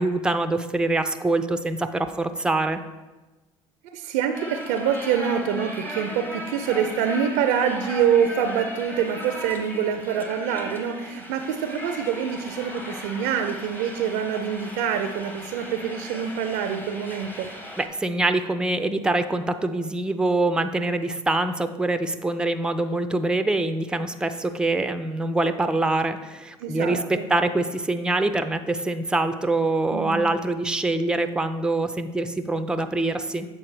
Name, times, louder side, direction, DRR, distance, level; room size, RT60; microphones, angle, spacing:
voice 1, 0.0-2.8 17.8-33.5, right 2 dB, 5° right, 9 dB, 0.4 m, -24 dB
voice 2, 3.8-17.5 26.6-27.3 29.9-30.2, right 8 dB, 75° right, 7 dB, 0.5 m, -25 dB
sound 1, 4.3-17.9, equal, 15° left, 1.0 m, -37 dB
7.4 x 4.4 x 3.3 m, 1.2 s
hypercardioid pair, 70°, 14 cm